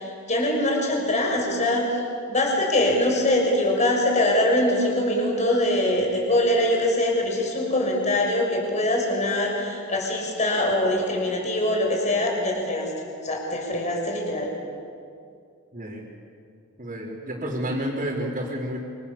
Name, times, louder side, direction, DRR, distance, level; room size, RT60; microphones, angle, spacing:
voice 1, 0.0-1.9 2.3-12.9 13.2-14.5, left 1 dB, 35° left, 0 dB, 6.1 m, -23 dB
voice 2, 15.7-16.0 16.8-18.8, equal, 35° right, -7 dB, 4.6 m, -30 dB
28.5 x 26.5 x 7.3 m, 2.4 s
head